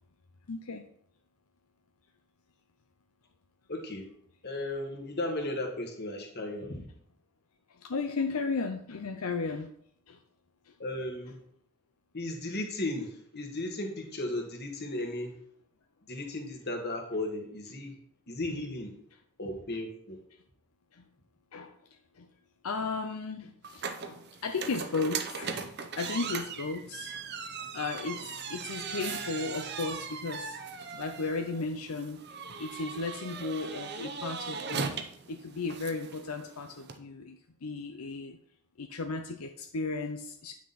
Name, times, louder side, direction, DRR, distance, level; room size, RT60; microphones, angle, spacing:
voice 1, 0.5-0.9 7.7-9.7 10.1-10.2 10.6-10.7 20.9-21.0 21.5-21.8 22.1-22.3 22.6-25.6 26.0-27.2 27.7-30.6 30.9-32.2 32.6-34.9 35.3-38.4 38.8-40.5, left 4 dB, 80° left, 5 dB, 0.7 m, -35 dB
voice 2, 3.7-4.1 4.4-6.9 10.8-11.4 12.1-15.3 16.1-17.9 18.3-18.9 19.4-20.2, left 1 dB, 45° left, 2 dB, 1.8 m, -35 dB
sound 1, 23.6-37.0, right 5 dB, 50° right, 0.8 m, -39 dB
9.5 x 6.2 x 4.2 m, 0.68 s
head